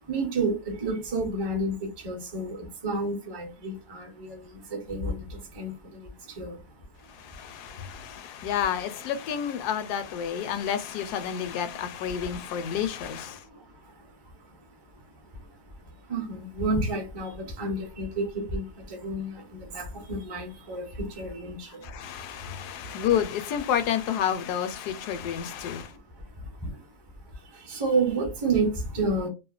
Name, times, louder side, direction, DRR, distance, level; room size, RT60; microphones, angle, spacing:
voice 1, 0.0-6.8 7.1-8.5 10.4-10.8 11.4-11.7 12.1-12.4 13.3-21.9 25.5-26.9 27.3-29.3, right 2 dB, 35° right, 0.4 m, -32 dB
voice 2, 7.4-13.4 21.8-25.9, left 9 dB, 85° left, 1.1 m, -30 dB
2.8 x 2.1 x 2.3 m
omnidirectional pair, 1.7 m